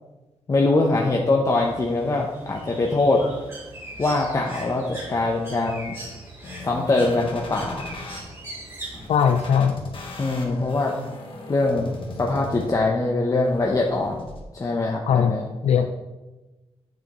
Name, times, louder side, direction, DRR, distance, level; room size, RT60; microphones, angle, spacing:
voice 1, 0.5-3.2 4.0-6.0 6.6-7.9 10.2-10.9 11.5-11.9 12.2-15.5, left 2 dB, 30° left, 0 dB, 0.7 m, -23 dB
Bird, 1.4-9.5, right 1 dB, 25° right, 2.7 m, -41 dB
sound 1, 6.4-8.2 8.9-13.0 13.4-14.4, left 2 dB, 55° left, 1.3 m, -38 dB
voice 2, 9.1-9.8 15.1-15.3 15.6-15.9, left 7 dB, 85° left, 6 dB, 0.4 m, -19 dB
8.3 x 6.5 x 3.1 m, 1.1 s
wide cardioid pair, 115°, 11 cm